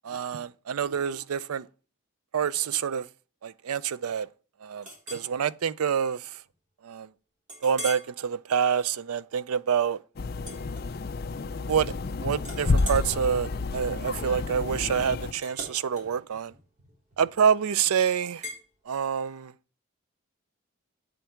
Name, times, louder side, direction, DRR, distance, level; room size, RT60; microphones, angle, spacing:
voice 1, 0.0-1.7 2.3-3.1 3.4-4.3 4.6-6.4 6.8-7.1 7.6-10.0 11.7-16.5 17.2-18.4 18.9-19.5, right 7 dB, 90° right, 0.4 m, -27 dB
Chink clink, 4.8-5.3 5.8-6.0 6.5-6.6 7.5-8.1 8.6-8.9 10.4-11.3 11.7-12.1 12.4-17.5 18.4-18.6, right 1 dB, 35° right, 3.8 m, -42 dB
sound 1, 10.2-15.3, left 3 dB, 45° left, 0.4 m, -30 dB
8.4 x 7.9 x 4.5 m
head